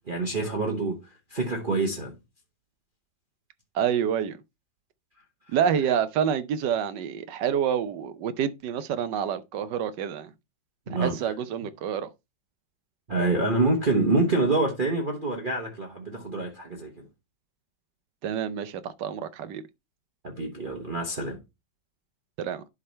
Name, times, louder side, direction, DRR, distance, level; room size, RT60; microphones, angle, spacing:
voice 1, 0.1-2.1 10.9-11.3 13.1-17.1 20.2-21.4, right 2 dB, 30° right, 1.1 m, -26 dB
voice 2, 3.7-4.4 5.5-10.3 10.9-12.1 18.2-19.6 22.4-22.6, right 8 dB, 70° right, 1.3 m, -28 dB
11.0 x 3.7 x 4.3 m
omnidirectional pair, 2.0 m